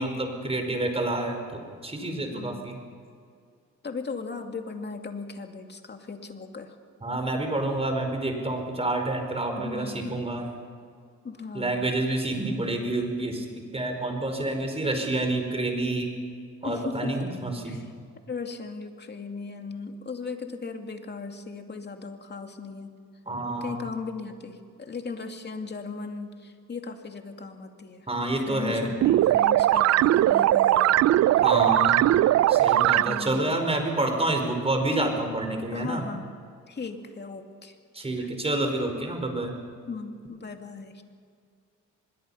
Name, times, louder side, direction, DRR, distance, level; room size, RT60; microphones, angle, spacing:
voice 1, 0.0-1.4 1.8-2.8 7.0-10.5 11.5-16.1 16.6-17.8 23.3-23.8 28.1-28.9 31.4-32.0 32.5-36.0 37.9-39.5, right 2 dB, 20° right, 4 dB, 5.0 m, -28 dB
voice 2, 2.3-2.7 3.8-6.8 9.5-10.1 11.2-11.9 16.6-17.4 17.6-17.9 18.3-22.9 23.6-28.1 28.5-30.9 33.0-33.4 35.7-36.4 36.7-37.7 38.2-38.3 39.9-41.0, left 4 dB, 35° left, 5 dB, 2.5 m, -37 dB
sound 1, 29.0-33.4, right 13 dB, 60° right, 0.5 m, -20 dB
25.0 x 21.5 x 5.8 m, 2.2 s
cardioid pair, 90°, 30 cm